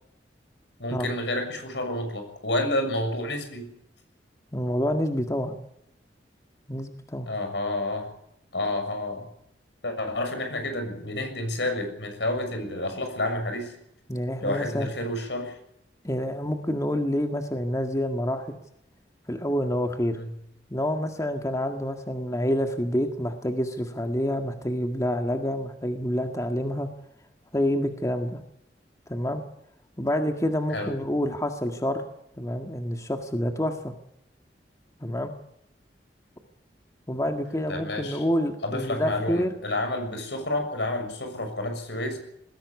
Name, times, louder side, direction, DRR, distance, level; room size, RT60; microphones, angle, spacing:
voice 1, 0.8-3.7 7.3-8.1 8.5-9.3 9.8-13.7 14.4-15.6 20.1-20.3 30.7-30.9 37.7-38.2 38.6-42.2, left 1 dB, 80° left, 6 dB, 6.7 m, -30 dB
voice 2, 4.5-5.6 6.7-7.3 14.1-14.9 16.0-18.5 19.3-20.2 20.7-26.9 27.5-28.4 29.1-29.4 30.0-32.0 32.4-33.9 35.0-35.3 37.1-39.5, equal, 20° left, 5 dB, 1.9 m, -27 dB
20.5 x 16.5 x 8.4 m, 0.76 s
head